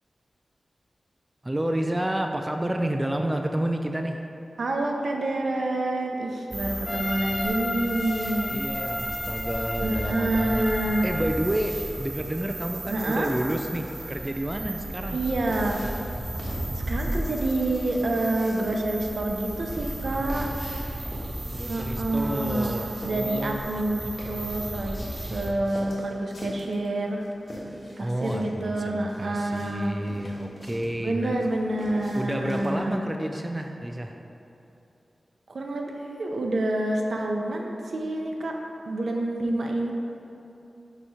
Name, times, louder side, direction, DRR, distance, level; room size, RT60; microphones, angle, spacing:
voice 1, 1.4-4.2 8.5-10.7 11.0-15.2 21.5-23.6 28.0-31.4 32.1-34.2, right 1 dB, 15° right, 4 dB, 0.3 m, -30 dB
voice 2, 4.6-8.6 9.8-11.1 12.9-13.3 15.1-15.8 16.9-20.5 21.7-27.2 28.0-29.9 31.0-33.1 35.5-35.9 36.2-38.6 38.9-39.9, right 2 dB, 80° right, 1 dB, 0.6 m, -28 dB
sound 1, 6.5-25.5, right 1 dB, 40° right, 0.8 m, -34 dB
Trumpet, 6.9-11.3, left 1 dB, 35° left, 0.6 m, -34 dB
sound 2, 15.5-32.9, equal, 65° left, 1.2 m, -43 dB
6.8 x 2.9 x 4.8 m, 2.9 s
wide cardioid pair, 85°, 0 cm